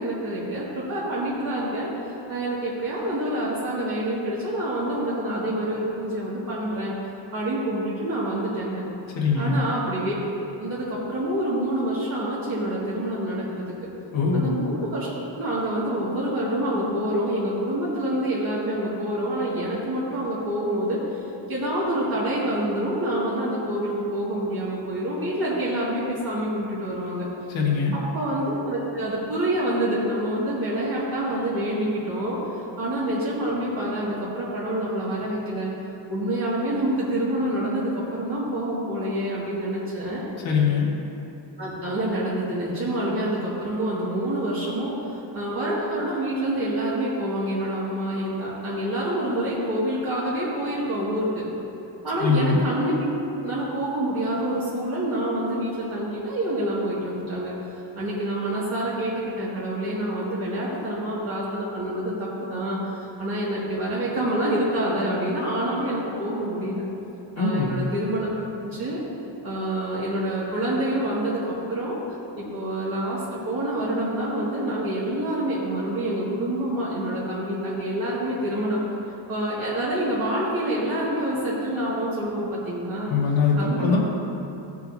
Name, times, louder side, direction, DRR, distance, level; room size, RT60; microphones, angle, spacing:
voice 1, 0.0-7.0 7.3-8.8 9.3-10.1 10.6-13.9 14.3-15.1 15.3-21.2 21.5-27.3 28.1-32.4 32.8-35.7 36.1-40.2 41.6-51.5 52.0-57.5 58.0-66.8 67.4-68.3 68.6-69.0 69.4-72.0 72.4-78.8 79.3-83.1 83.6-84.0, right 1 dB, 50° right, -9 dB, 2.3 m, -27 dB
voice 2, 9.2-9.6 14.1-14.5 27.5-28.0 40.4-40.9 52.2-52.6 67.4-67.8 83.1-84.0, left 5 dB, 85° left, -3 dB, 1.9 m, -22 dB
16.5 x 8.1 x 2.8 m, 2.9 s
wide cardioid pair, 165°, 45 cm